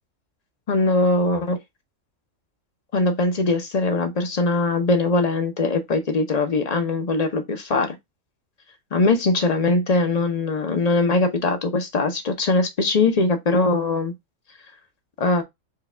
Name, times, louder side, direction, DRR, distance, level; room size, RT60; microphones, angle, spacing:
voice 1, 0.7-1.6 2.9-7.9 8.9-14.1 15.2-15.4, left 3 dB, 40° left, 0.6 m, -21 dB
4.8 x 2.3 x 3.2 m
omnidirectional pair, 1.4 m